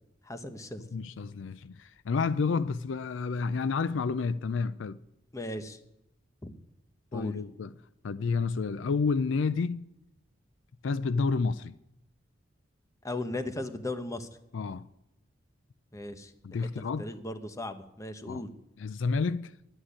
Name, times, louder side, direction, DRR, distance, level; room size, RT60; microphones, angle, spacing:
voice 1, 0.2-0.9 5.3-5.8 6.4-6.5 7.1-7.4 13.0-14.3 15.9-16.3 17.0-18.5, left 1 dB, 15° left, 0.9 m, -37 dB
voice 2, 0.9-5.0 7.1-7.7 8.0-9.9 10.8-11.7 14.5-14.8 16.4-17.1 18.3-18.4 18.8-19.6, left 4 dB, 70° left, 0.4 m, -30 dB
11.5 x 8.8 x 9.9 m
head